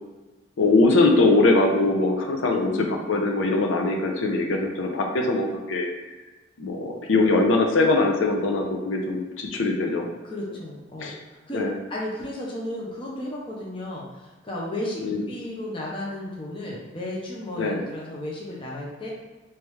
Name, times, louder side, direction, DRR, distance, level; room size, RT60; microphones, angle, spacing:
voice 1, 0.6-5.9 6.6-10.1 11.0-11.1 11.5-11.7 15.0-15.2 17.6-17.8, left 2 dB, 80° left, 2 dB, 0.5 m, -22 dB
voice 2, 2.5-2.9 10.2-11.6 11.9-15.0 15.3-19.1, left 1 dB, 25° left, -4 dB, 0.7 m, -34 dB
3.4 x 3.1 x 3.1 m, 1.2 s
head